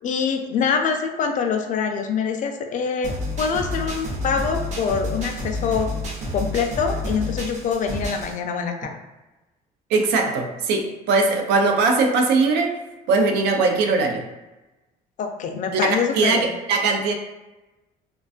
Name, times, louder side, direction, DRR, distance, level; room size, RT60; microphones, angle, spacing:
voice 1, 0.0-5.9 6.3-9.0 15.2-16.5, left 6 dB, 50° left, 4 dB, 0.4 m, -25 dB
sound 1, 3.0-8.3, left 1 dB, 45° right, 0.6 m, -29 dB
voice 2, 9.9-12.7 13.1-14.3 15.7-17.1, right 3 dB, 90° right, 4 dB, 0.5 m, -20 dB
2.4 x 2.2 x 2.4 m, 1.1 s
cardioid pair, 110°, 17 cm